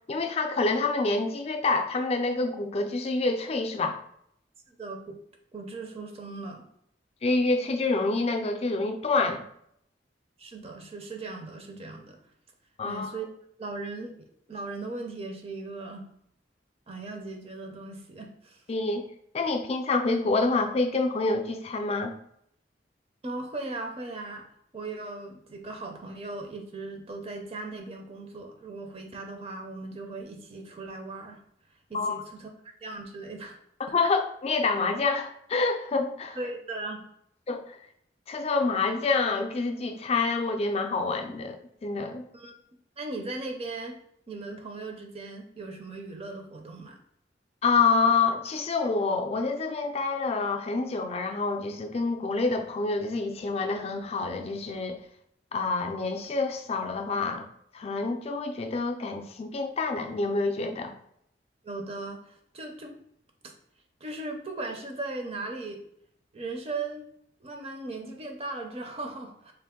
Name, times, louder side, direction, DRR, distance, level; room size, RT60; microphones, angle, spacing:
voice 1, 0.1-4.0 7.2-9.4 12.8-13.2 18.7-19.1 19.3-22.1 31.9-32.2 33.9-36.4 37.5-37.8 38.3-42.2 47.6-55.0 55.5-57.5 57.7-60.9, left 3 dB, 35° left, 5 dB, 0.4 m, -27 dB
voice 2, 4.7-5.2 5.5-6.6 10.4-12.2 12.8-13.3 13.6-14.2 14.5-16.1 16.9-18.6 23.2-24.4 24.7-31.4 31.9-32.5 32.8-33.6 36.4-37.0 42.3-42.6 43.0-44.0 44.3-47.0 61.6-63.0 64.0-65.8 66.3-67.1 67.4-69.5, right 2 dB, 35° right, 3 dB, 0.5 m, -38 dB
3.4 x 2.5 x 3.6 m, 0.71 s
head